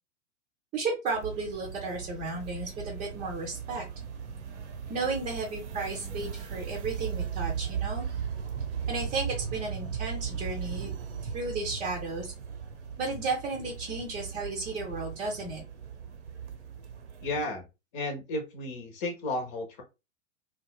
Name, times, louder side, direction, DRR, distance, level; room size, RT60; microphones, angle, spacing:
voice 1, 0.7-3.8 4.9-8.1 8.9-10.9 11.3-12.3 13.0-15.6, right 3 dB, 20° right, -1 dB, 0.7 m, -34 dB
sound 1, 1.1-17.4, right 7 dB, 65° right, 0.7 m, -37 dB
voice 2, 17.2-17.7 17.9-19.8, left 2 dB, 40° left, 4 dB, 1.1 m, -33 dB
3.1 x 2.3 x 2.2 m, 0.26 s
figure-of-eight pair, 105°, 38 cm